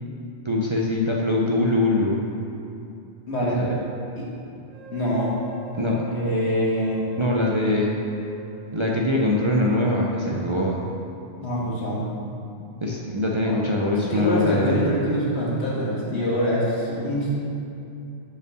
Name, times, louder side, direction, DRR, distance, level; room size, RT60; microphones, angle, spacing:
voice 1, 0.4-2.2 3.5-3.8 5.8-6.0 7.2-8.0 8.7-10.9 12.6-14.8, left 1 dB, 40° right, -3 dB, 0.5 m, -23 dB
voice 2, 3.3-3.6 4.2-4.3 4.9-5.4 6.1-7.0 11.4-12.0 13.5-13.6 14.1-17.4, equal, 80° left, -6 dB, 1.8 m, -24 dB
sound 1, 4.7-10.7, right 3 dB, 85° right, 1.9 m, -45 dB
5.4 x 4.9 x 6.1 m, 2.7 s
omnidirectional pair, 1.1 m